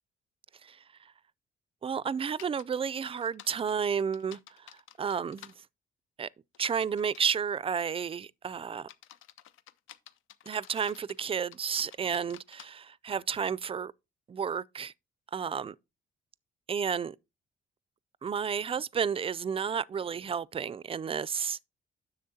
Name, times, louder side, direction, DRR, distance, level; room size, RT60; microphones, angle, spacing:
voice 1, 1.8-5.5 6.2-6.3 6.6-8.9 10.5-13.9 14.3-14.9 15.3-15.7 16.7-17.2 18.2-21.6, right 7 dB, 30° right, 0.4 m, -32 dB
sound 1, 2.4-2.6 3.1-5.6 6.5-7.4 7.9-8.2 8.8-11.2 11.5-12.7, left 11 dB, 85° left, 0.7 m, -52 dB
10.5 x 6.9 x 2.7 m
cardioid pair, 90°, 20 cm